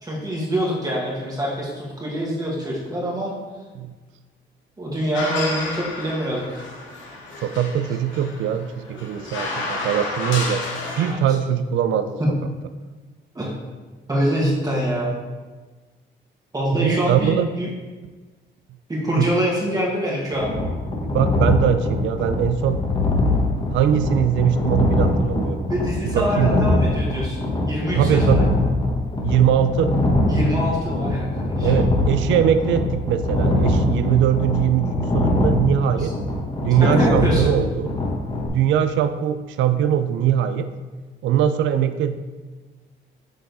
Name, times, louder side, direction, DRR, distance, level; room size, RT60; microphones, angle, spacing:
voice 1, 0.0-3.3 4.8-6.6 11.0-11.2 12.2-12.3 13.3-13.5 14.1-15.1 16.5-17.7 18.9-20.5 25.7-27.4 27.7-28.5 30.3-31.7 32.4-32.5 36.0-36.1 36.8-37.5, equal, 20° right, -4 dB, 1.6 m, -25 dB
sound 1, 5.1-11.1, left 2 dB, 70° left, 1.2 m, -31 dB
voice 2, 7.4-10.6 11.0-12.2 16.7-17.5 19.2-19.3 21.0-22.8 23.7-25.7 26.1-26.6 27.9-28.5 29.2-30.0 31.6-36.1 36.6-37.9 38.5-40.7 41.2-42.2, right 9 dB, 70° right, 10 dB, 0.4 m, -21 dB
sound 2, 20.3-38.5, left 2 dB, 25° left, 1.2 m, -22 dB
6.9 x 3.7 x 4.0 m, 1.3 s
cardioid pair, 90°, 20 cm